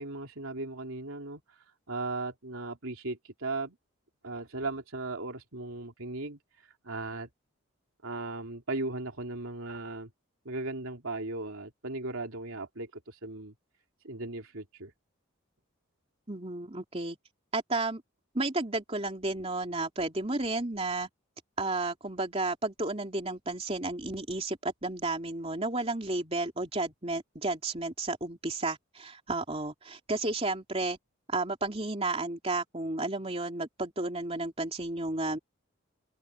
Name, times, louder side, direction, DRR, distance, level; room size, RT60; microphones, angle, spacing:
voice 1, 0.0-1.4 1.9-3.8 4.2-6.4 6.8-7.3 8.0-10.1 10.4-13.5 14.0-14.9, right 2 dB, 75° right, 3.0 m, -37 dB
voice 2, 16.3-17.2 17.5-18.0 18.3-21.1 21.6-31.0 31.3-35.4, right 2 dB, 30° right, 3.2 m, -32 dB
head